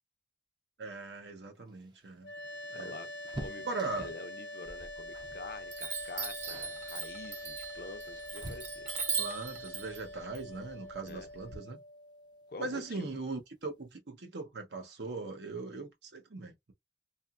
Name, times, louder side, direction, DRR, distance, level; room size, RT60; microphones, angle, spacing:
voice 1, 0.8-2.3 2.7-2.9 3.6-4.1 9.2-11.8 12.6-16.7, right 3 dB, 80° right, 0.9 m, -40 dB
sound 1, 1.6-4.3 5.1-5.5 5.8-6.0 6.4-6.8 7.6-9.1 10.9-11.0 11.3-11.4 12.6-13.0 13.4-13.5 13.8-14.0, right 1 dB, 25° right, 0.4 m, -47 dB
sound 2, 2.2-13.3, left 1 dB, 85° left, 0.8 m, -45 dB
voice 2, 2.7-3.1 3.4-3.7 4.0-8.9 11.0-11.3 12.5-13.1, left 3 dB, 55° left, 0.5 m, -47 dB
Chime, 4.7-5.3 5.7-11.6, right 6 dB, 40° right, 0.9 m, -39 dB
2.9 x 2.3 x 2.4 m
head